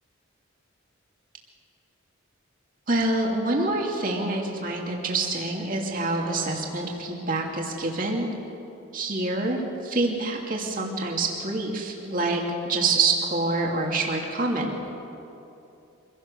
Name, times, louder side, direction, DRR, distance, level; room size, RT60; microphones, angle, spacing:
voice 1, 2.9-8.3 8.9-14.9, right 2 dB, 40° right, 0 dB, 2.5 m, -26 dB
25.5 x 17.0 x 6.7 m, 2.9 s
head